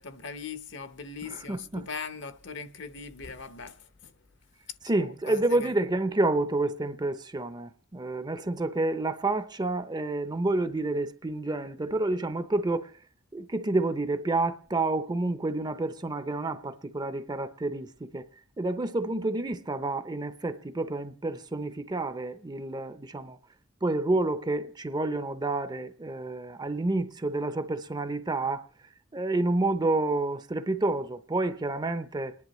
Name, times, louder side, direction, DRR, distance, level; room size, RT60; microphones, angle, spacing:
voice 1, 0.0-4.1 4.8-5.8, left 5 dB, 60° left, 0.9 m, -40 dB
voice 2, 1.3-1.9 4.8-12.9 13.3-18.3 18.6-23.4 23.8-28.7 29.1-32.3, right 2 dB, 20° right, 0.6 m, -29 dB
29.5 x 10.5 x 3.1 m
head